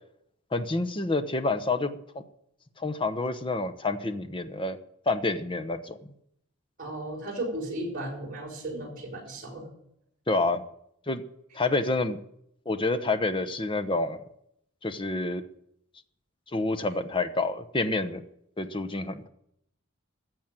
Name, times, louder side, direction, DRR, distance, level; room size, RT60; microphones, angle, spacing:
voice 1, 0.5-2.0 2.8-4.8 5.1-6.0 10.3-10.6 11.1-11.2 11.5-12.2 12.7-14.2 14.8-15.4 16.5-18.2 18.6-19.3, left 2 dB, 25° left, 9 dB, 0.9 m, -28 dB
voice 2, 6.8-9.7, right 1 dB, 40° right, -1 dB, 5.6 m, -35 dB
15.0 x 7.3 x 9.0 m, 0.74 s
head